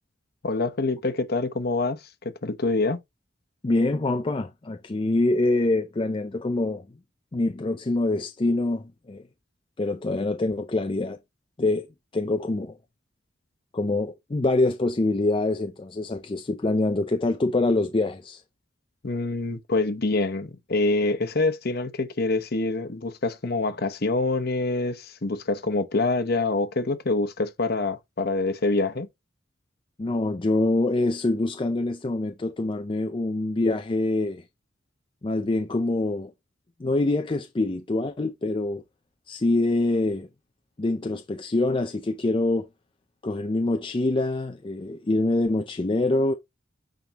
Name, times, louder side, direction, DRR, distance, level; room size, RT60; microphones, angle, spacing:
voice 1, 0.4-2.0 2.4-3.0 19.0-29.1, left 3 dB, 55° left, 1.0 m, -26 dB
voice 2, 3.6-6.9 7.3-9.2 9.8-11.2 11.6-11.9 12.1-12.8 13.7-18.4 30.0-34.4 35.2-36.3 36.8-38.8 39.3-40.3 40.8-42.7 43.2-46.3, left 2 dB, 25° left, 0.5 m, -25 dB
9.0 x 3.7 x 2.9 m
head